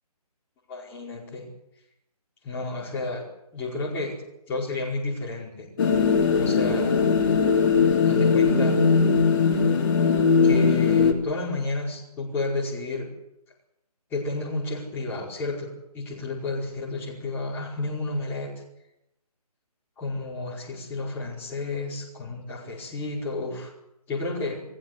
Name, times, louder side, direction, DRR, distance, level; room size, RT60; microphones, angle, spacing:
voice 1, 0.7-1.4 2.4-3.2 3.5-4.2 4.5-5.7 6.4-7.0 8.0-8.8 10.4-13.1 14.1-15.7 15.9-18.6 20.0-23.7 24.1-24.6, left 2 dB, 10° left, -4 dB, 4.9 m, -31 dB
sound 1, 5.8-11.1, left 5 dB, 30° left, 3.2 m, -20 dB
29.0 x 16.5 x 8.1 m, 0.84 s
figure-of-eight pair, 165°, 20 cm